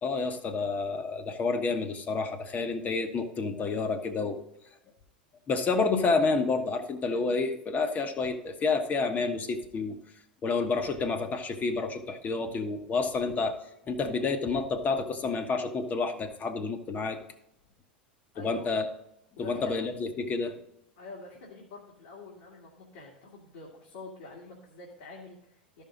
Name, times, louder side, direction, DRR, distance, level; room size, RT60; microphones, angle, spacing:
voice 1, 0.0-4.4 5.5-10.0 10.4-13.6 13.9-17.2 18.4-18.9 19.4-20.6, left 4 dB, 30° left, 8 dB, 1.2 m, -29 dB
voice 2, 18.3-18.8 19.4-19.7 21.0-25.8, left 3 dB, 65° left, -3 dB, 2.0 m, -46 dB
13.0 x 5.5 x 3.8 m, 0.84 s
figure-of-eight pair, 85°, 5 cm